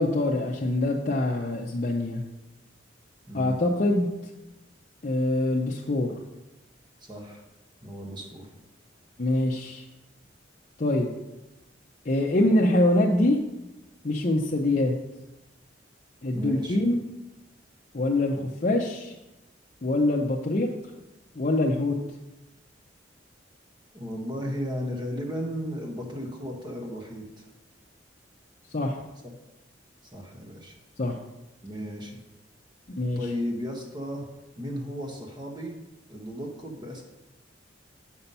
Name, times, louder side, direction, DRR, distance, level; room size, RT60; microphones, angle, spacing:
voice 1, 0.0-2.2 3.3-4.1 5.0-6.1 9.2-9.8 10.8-11.1 12.1-13.4 14.0-14.9 16.2-17.0 17.9-19.1 19.8-20.7 21.4-21.9 28.7-29.0 31.0-31.1 33.0-33.2, left 1 dB, 40° left, -2 dB, 0.6 m, -24 dB
voice 2, 3.3-3.6 7.0-7.4 7.8-8.5 16.3-16.8 23.9-27.5 29.2-29.3 30.1-30.7 31.6-32.2 33.2-34.3 34.6-35.7 36.1-37.0, equal, 25° right, 1 dB, 1.2 m, -34 dB
6.8 x 5.7 x 5.5 m, 0.98 s
head